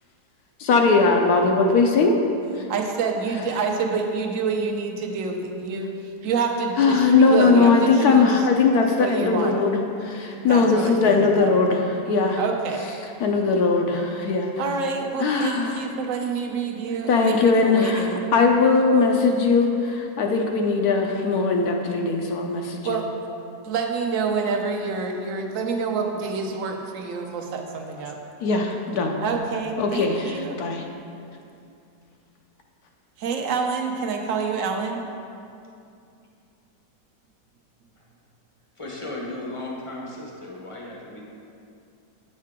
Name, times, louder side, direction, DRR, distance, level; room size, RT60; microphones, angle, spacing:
voice 1, 0.6-2.1 6.8-12.4 13.2-14.5 15.2-15.8 17.1-23.0 28.4-29.2 29.8-30.8, left 4 dB, 70° left, 2 dB, 1.0 m, -20 dB
voice 2, 2.7-5.9 6.2-8.5 9.0-9.5 10.5-11.5 12.4-12.8 14.6-18.2 22.8-23.1 23.6-28.2 29.2-30.6 33.2-35.0, right 4 dB, 60° right, 3 dB, 0.9 m, -27 dB
voice 3, 38.8-41.2, left 2 dB, 25° left, -3 dB, 0.6 m, -35 dB
8.5 x 6.5 x 3.6 m, 2.5 s
omnidirectional pair, 1.9 m